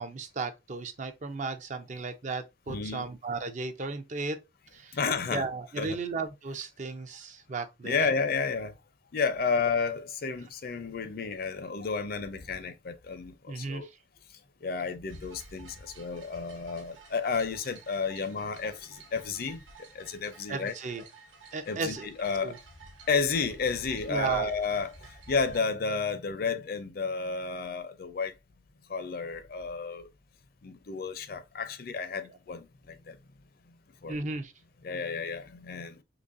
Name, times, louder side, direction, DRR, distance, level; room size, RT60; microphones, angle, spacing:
voice 1, 0.0-4.4 4.7-5.0 5.3-8.0 13.5-13.9 20.5-21.1 21.5-22.1 22.4-22.6 24.1-24.5 34.1-34.5, right 4 dB, 40° right, 0.5 m, -35 dB
voice 2, 2.7-3.0 4.9-5.5 5.8-6.0 7.8-8.7 9.1-13.9 14.6-19.6 19.9-20.7 21.7-22.6 23.1-25.0 25.3-28.3 28.9-30.1 30.6-33.2 34.0-34.2 34.8-36.0, left 5 dB, 50° left, 0.5 m, -31 dB
sound 1, 15.1-25.6, right 2 dB, 85° right, 1.2 m, -51 dB
3.9 x 3.0 x 2.5 m
head